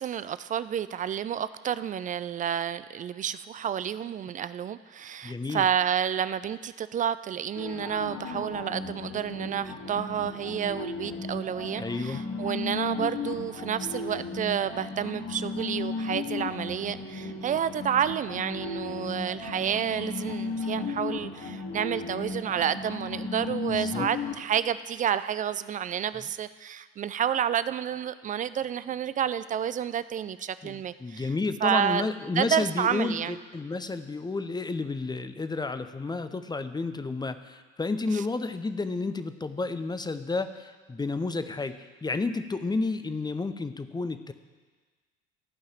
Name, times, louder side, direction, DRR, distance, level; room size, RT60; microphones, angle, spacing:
voice 1, 0.0-31.3 31.6-32.1 32.4-33.4 38.1-38.2, right 9 dB, 25° right, 15 dB, 0.3 m, -30 dB
voice 2, 5.2-5.7 11.7-12.2 23.7-24.1 30.6-44.3, left 3 dB, 10° left, 10 dB, 0.7 m, -31 dB
sound 1, 7.6-24.3, left 4 dB, 50° left, 2.3 m, -35 dB
14.5 x 5.6 x 7.5 m, 1.4 s
figure-of-eight pair, 60°, 37 cm